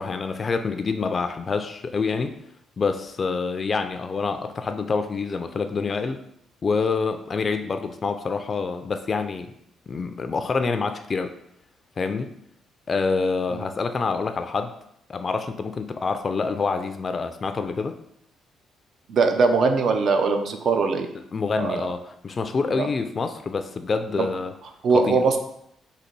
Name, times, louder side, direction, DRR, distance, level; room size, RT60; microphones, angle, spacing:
voice 1, 0.0-2.4 2.8-6.2 6.6-9.5 9.9-11.4 12.0-12.3 12.9-14.7 15.1-18.0 21.3-24.5 24.9-25.2, left 4 dB, 40° left, 8 dB, 0.3 m, -26 dB
voice 2, 19.1-21.1 21.6-21.8 22.7-22.9 24.2-24.3 24.8-25.4, right 4 dB, 60° right, 6 dB, 0.5 m, -21 dB
3.9 x 2.8 x 4.5 m, 0.75 s
cardioid pair, 90°, 0 cm